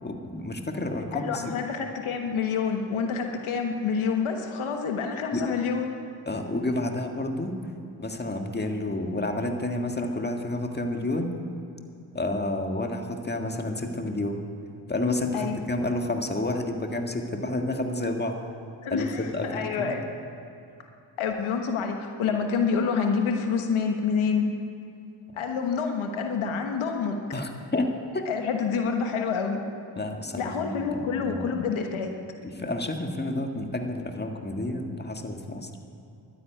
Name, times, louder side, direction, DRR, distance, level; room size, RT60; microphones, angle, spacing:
voice 1, 0.0-1.5 5.3-5.4 6.3-7.6 8.0-11.3 12.1-14.4 14.9-18.4 18.9-19.9 27.3-28.2 29.9-31.5 32.4-35.7, left 2 dB, 20° left, 3 dB, 1.7 m, -30 dB
voice 2, 1.1-5.9 15.3-15.6 18.8-20.0 21.2-24.5 25.4-27.2 28.3-29.6 30.4-32.1, left 6 dB, 85° left, 4 dB, 1.3 m, -27 dB
12.0 x 10.0 x 9.2 m, 2.6 s
cardioid pair, 60°, 47 cm